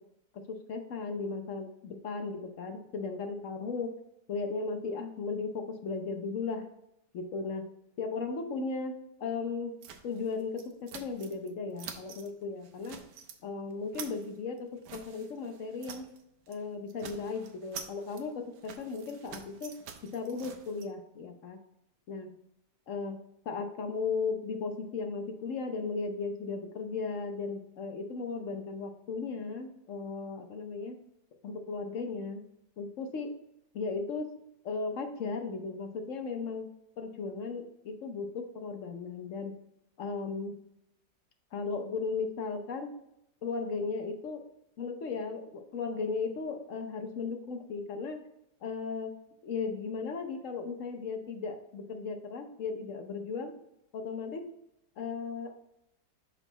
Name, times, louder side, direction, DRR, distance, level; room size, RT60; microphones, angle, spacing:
voice 1, 0.5-4.0 4.3-6.7 7.1-7.7 8.0-9.8 10.0-13.0 13.4-16.1 16.5-19.8 20.0-21.6 22.1-22.3 22.9-31.0 31.4-32.5 32.8-33.4 33.7-34.4 34.6-39.6 40.0-40.6 41.5-42.9 43.4-44.5 44.8-48.3 48.6-49.1 49.4-53.6 53.9-54.5 55.0-55.5, left 4 dB, 60° left, 5 dB, 1.0 m, -36 dB
sound 1, 9.8-11.5 11.8-12.3 12.6-13.4 13.7-16.2 16.5-16.6 16.9-20.8, right 7 dB, 80° right, 1.3 m, -47 dB
6.2 x 4.5 x 4.0 m, 0.80 s
omnidirectional pair, 1.8 m